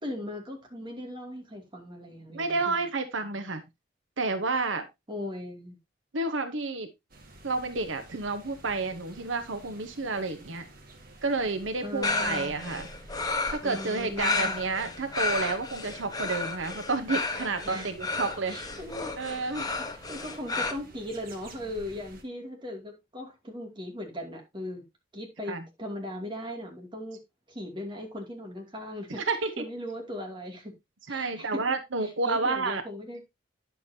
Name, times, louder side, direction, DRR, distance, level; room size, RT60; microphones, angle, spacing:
voice 1, 0.0-2.8 5.1-5.8 11.8-12.5 13.6-14.6 17.6-17.9 18.5-19.4 19.8-24.8 25.1-27.2 27.5-29.3 29.6-30.8 31.1-31.7 32.0-33.2, left 1 dB, 25° right, 2.5 m, -38 dB
voice 2, 2.3-3.6 4.2-4.8 6.1-6.9 7.4-10.6 11.2-12.9 13.5-18.6 19.2-19.7 25.5-25.6 29.2-29.6 31.1-32.8, right 3 dB, 85° right, 1.1 m, -30 dB
sound 1, 7.1-22.2, right 1 dB, 50° right, 1.9 m, -51 dB
sound 2, 12.0-20.7, left 3 dB, 20° left, 1.1 m, -32 dB
10.0 x 7.1 x 2.8 m
head